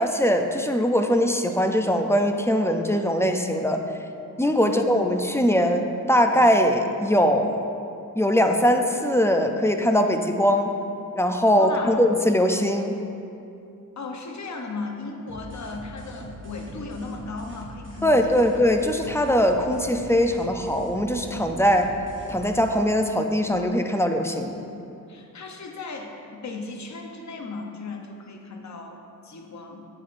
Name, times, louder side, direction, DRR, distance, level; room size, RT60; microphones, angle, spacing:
voice 1, 0.0-3.8 4.4-7.6 8.2-10.7 11.2-13.0 18.0-21.9 22.3-24.5, equal, 10° left, 4 dB, 0.4 m, -21 dB
voice 2, 11.6-12.0 14.0-18.1 24.5-24.6 25.1-29.8, left 3 dB, 55° left, 2 dB, 0.8 m, -36 dB
sound 1, 15.3-22.8, right 1 dB, 35° right, 1.0 m, -41 dB
8.2 x 7.8 x 2.5 m, 2.6 s
wide cardioid pair, 110°, 34 cm